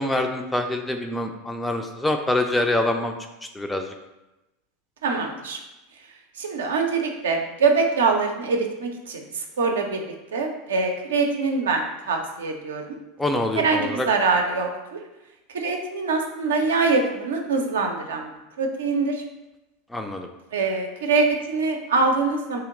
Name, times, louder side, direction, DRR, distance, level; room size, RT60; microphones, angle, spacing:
voice 1, 0.0-3.1 3.5-3.9 13.2-14.1 19.9-20.3, left 1 dB, 10° left, 4 dB, 0.4 m, -25 dB
voice 2, 5.0-5.6 6.4-12.9 13.6-15.0 15.5-18.3 18.6-19.2 20.5-22.6, right 4 dB, 70° right, 3 dB, 0.5 m, -24 dB
3.1 x 2.8 x 3.7 m, 0.99 s
figure-of-eight pair, 80°, 0 cm